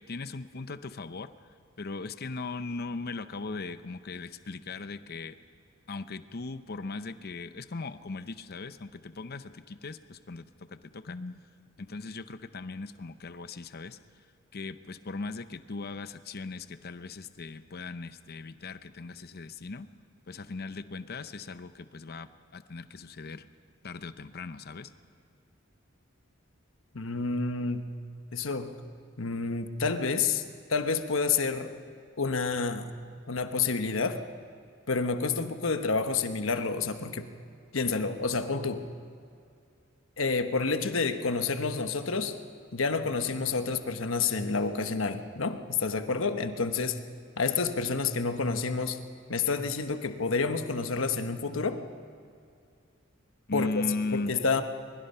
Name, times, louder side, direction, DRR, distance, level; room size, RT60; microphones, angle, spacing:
voice 1, 0.0-1.3 1.8-5.4 5.9-11.4 11.8-14.0 14.5-19.9 20.3-23.4 23.8-24.9 53.5-54.3, left 3 dB, 50° left, 12 dB, 0.7 m, -38 dB
voice 2, 26.9-27.9 28.3-28.7 29.2-30.4 30.7-31.7 32.2-32.9 33.3-34.3 34.9-37.2 37.7-38.9 40.2-42.4 42.7-47.0 47.4-49.0 49.3-51.8 53.5-53.8 54.1-54.6, left 4 dB, 70° left, 8 dB, 1.2 m, -29 dB
22.5 x 22.0 x 5.6 m, 2.4 s
head